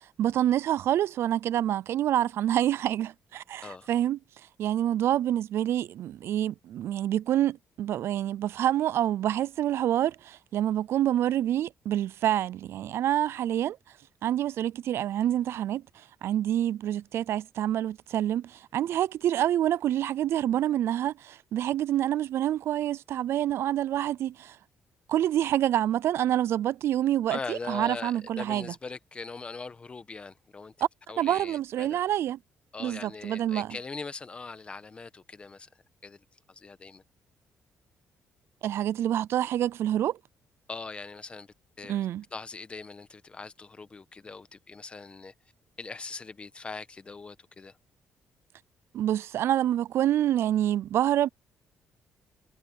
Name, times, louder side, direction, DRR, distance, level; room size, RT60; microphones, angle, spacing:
voice 1, 0.2-4.2 4.6-13.8 14.2-24.6 25.1-28.7 31.2-32.4 32.8-33.7 38.6-40.2 41.9-42.2 48.9-51.3, right 12 dB, 65° right, 0.3 m, -27 dB
voice 2, 27.3-30.7 31.1-32.0 32.7-35.7 36.0-37.0 40.7-42.1 42.3-45.3 45.8-47.8, left 4 dB, 25° left, 1.2 m, -41 dB
cardioid pair, 130°, 5 cm